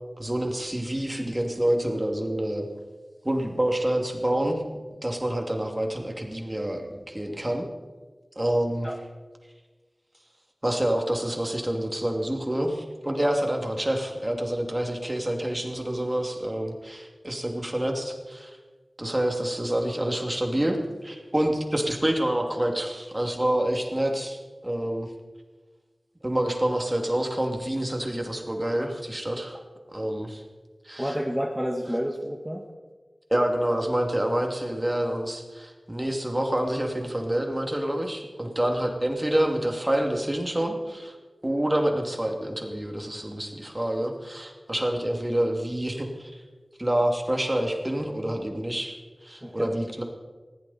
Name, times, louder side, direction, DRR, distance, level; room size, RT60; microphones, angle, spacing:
voice 1, 0.2-2.7 3.2-4.6 5.0-7.7 8.4-8.9 10.6-18.6 19.0-24.4 24.6-25.1 26.2-29.6 29.9-30.4 30.8-31.2 33.3-41.2 41.4-46.4 46.8-48.9 49.2-50.0, right 1 dB, 25° right, 3 dB, 2.7 m, -27 dB
voice 2, 31.0-32.6 49.4-49.8, equal, 5° right, 0 dB, 1.8 m, -29 dB
20.0 x 16.0 x 4.3 m, 1.3 s
wide cardioid pair, 50°, 0 cm